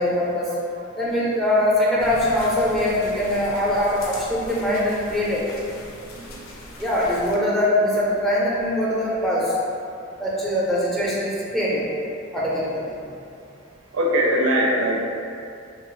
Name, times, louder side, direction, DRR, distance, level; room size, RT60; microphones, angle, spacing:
voice 1, 0.0-0.5 1.0-5.4 6.8-9.6 10.2-11.9 12.3-12.9, left 1 dB, ahead, -7 dB, 0.5 m, -22 dB
sound 1, 2.0-7.3, left 1 dB, 80° left, 0.4 m, -40 dB
voice 2, 13.9-15.1, equal, 90° right, -1 dB, 0.4 m, -21 dB
2.8 x 2.3 x 3.0 m, 2.5 s
head